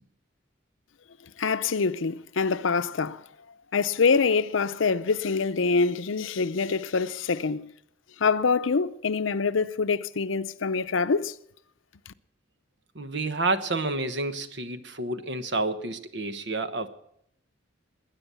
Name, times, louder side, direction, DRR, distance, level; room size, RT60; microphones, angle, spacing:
voice 1, 1.4-3.2 3.7-7.7 8.2-11.3, left 4 dB, 90° left, 0.6 m, -25 dB
voice 2, 12.9-16.9, right 2 dB, 65° right, 1.1 m, -29 dB
20.0 x 9.9 x 6.9 m
head